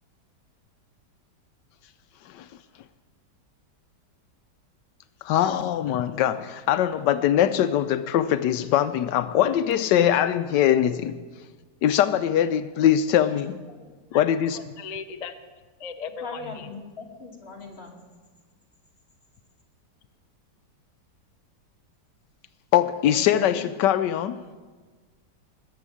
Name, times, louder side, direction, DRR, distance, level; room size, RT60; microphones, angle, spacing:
voice 1, 5.2-11.1 11.8-13.6 14.1-14.6 22.7-24.4, left 10 dB, 85° left, 11 dB, 1.2 m, -22 dB
voice 2, 14.5-15.3 15.8-16.7 23.1-23.7, left 6 dB, 50° left, 8 dB, 0.4 m, -37 dB
voice 3, 16.2-18.0, left 3 dB, 35° left, 0 dB, 2.4 m, -40 dB
20.0 x 7.1 x 8.4 m, 1.4 s
omnidirectional pair, 1.8 m